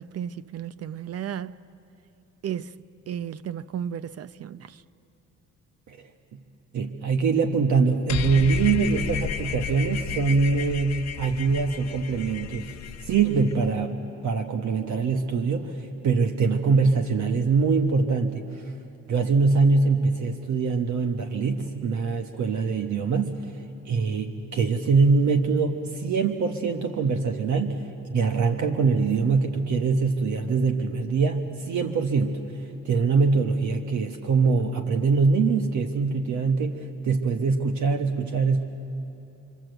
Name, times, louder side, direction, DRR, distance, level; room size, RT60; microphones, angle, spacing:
voice 1, 0.0-1.6 2.4-2.7 3.1-4.8, right 9 dB, 55° right, 0.7 m, -34 dB
voice 2, 6.7-12.7 13.0-14.0 14.2-18.6 19.1-23.4 23.8-27.8 28.1-32.4 32.8-38.6, right 4 dB, 70° right, 1.3 m, -23 dB
sound 1, 8.1-13.7, left 8 dB, 65° left, 0.9 m, -33 dB
27.0 x 25.0 x 8.0 m
cardioid pair, 90°, 30 cm